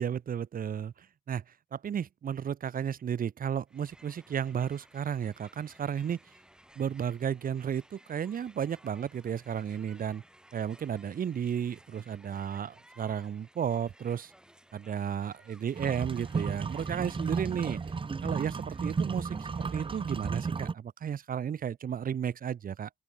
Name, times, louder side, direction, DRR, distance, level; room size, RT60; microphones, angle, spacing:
voice 1, 0.0-1.4 1.7-6.2 6.8-10.2 10.5-14.3 14.7-17.8 18.2-22.9, right 8 dB, 70° right, 0.7 m, -33 dB
Crowd, 3.7-20.4, right 1 dB, 5° right, 3.1 m, -59 dB
sound 1, 15.8-20.7, right 5 dB, 35° right, 0.9 m, -33 dB
open air
wide cardioid pair, 160°, 15 cm